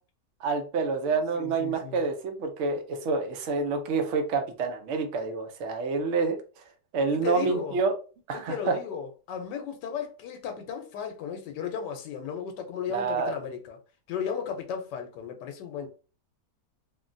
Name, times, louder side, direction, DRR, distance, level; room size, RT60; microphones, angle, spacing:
voice 1, 0.4-6.4 6.9-7.9 8.3-8.7 12.9-13.3, right 4 dB, 65° right, 0.7 m, -28 dB
voice 2, 1.3-2.0 7.1-7.8 8.5-13.8 14.1-15.9, left 7 dB, 90° left, 1.3 m, -35 dB
3.3 x 2.2 x 2.5 m
omnidirectional pair, 1.8 m